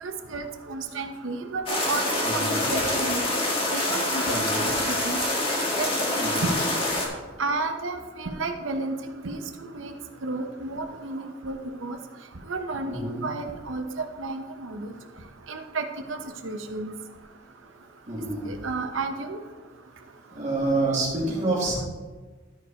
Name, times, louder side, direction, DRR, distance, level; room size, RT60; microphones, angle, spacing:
voice 1, 0.0-2.0 2.3-3.2 3.7-4.7 5.0-5.2 5.8-6.6 7.4-9.0 9.2-9.9 10.2-12.0 12.5-14.9 15.5-16.9 18.4-19.4, right 3 dB, 85° right, 6 dB, 1.0 m, -32 dB
sound 1, 1.7-7.1, left 1 dB, 30° left, 1.6 m, -26 dB
voice 2, 2.2-2.6 4.3-4.6 6.2-6.5 12.8-13.3 18.1-18.5 20.3-21.9, right 2 dB, 40° right, -5 dB, 2.7 m, -28 dB
12.5 x 4.7 x 4.4 m, 1.3 s
head